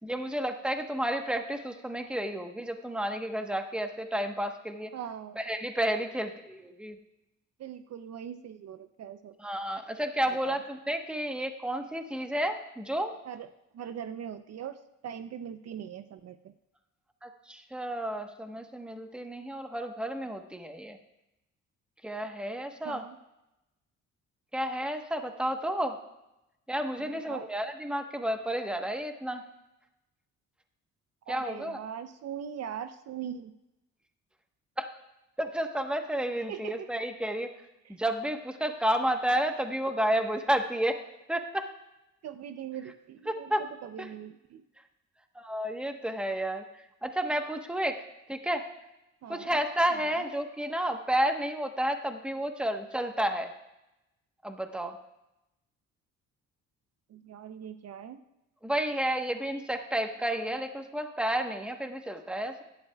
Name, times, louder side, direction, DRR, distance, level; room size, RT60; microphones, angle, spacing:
voice 1, 0.0-4.9 5.4-7.0 9.4-13.1 17.2-21.0 22.0-23.0 24.5-26.0 26.7-29.4 31.3-31.8 34.8-34.9 35.4-37.5 37.9-41.0 41.3-41.7 43.3-43.6 44.0-44.1 45.3-46.6 47.0-48.0 48.3-48.6 49.3-53.5 54.4-55.0 58.6-62.6, right 1 dB, 5° right, 5 dB, 1.1 m, -31 dB
voice 2, 4.9-5.4 7.6-9.3 10.4-10.6 13.2-13.5 13.7-16.5 22.8-23.2 26.9-27.5 31.3-33.5 36.5-36.9 37.8-38.0 42.2-44.6 49.2-49.5 49.9-50.2 57.1-58.2, right 9 dB, 55° right, 10 dB, 0.6 m, -41 dB
16.5 x 11.0 x 2.3 m, 0.93 s
cardioid pair, 90°, 30 cm